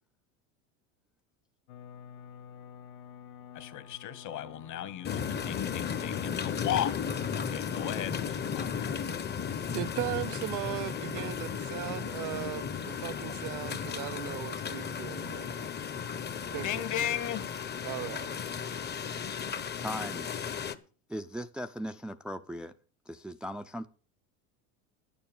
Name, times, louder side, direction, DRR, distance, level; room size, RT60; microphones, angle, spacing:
sound 1, 1.7-8.4, left 9 dB, 80° left, 1.2 m, -49 dB
voice 1, 3.5-7.0 7.3-9.0 16.6-17.5, left 11 dB, 45° left, 1.6 m, -35 dB
sound 2, 5.0-20.7, left 7 dB, 25° left, 1.0 m, -35 dB
voice 2, 9.7-15.7 15.9-16.1 16.5-16.9 17.8-18.3, right 18 dB, 50° right, 0.5 m, -38 dB
voice 3, 19.8-20.3 21.1-22.7 23.1-23.9, equal, ahead, 0.6 m, -38 dB
11.0 x 7.1 x 7.3 m
supercardioid pair, 100°, 41 cm